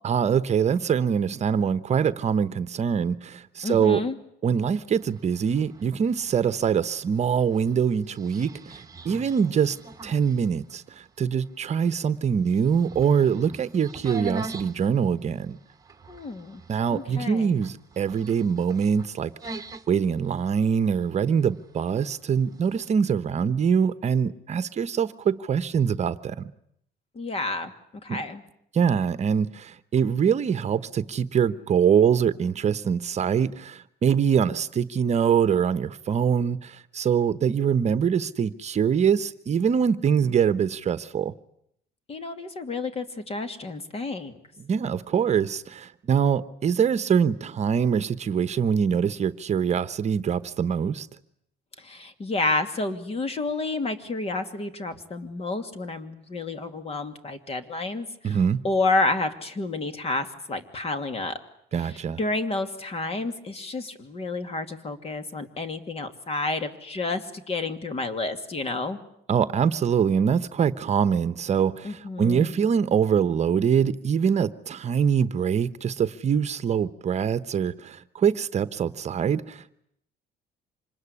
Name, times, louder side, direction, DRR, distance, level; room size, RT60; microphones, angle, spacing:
voice 1, 0.0-4.0 4.4-9.8 10.0-15.6 16.7-19.6 19.9-26.5 28.1-28.2 28.7-41.3 44.6-51.1 58.2-58.6 61.7-62.2 69.3-79.7, right 7 dB, 40° right, 1.0 m, -24 dB
voice 2, 3.6-4.2 16.1-16.6 16.9-17.6 27.1-27.7 28.0-28.4 42.1-44.4 51.8-58.4 58.6-61.4 61.8-69.0 71.8-72.5, left 3 dB, 35° left, 2.6 m, -30 dB
sound 1, 4.6-22.9, right 2 dB, 20° right, 1.6 m, -44 dB
26.0 x 20.5 x 9.9 m
cardioid pair, 110°, 17 cm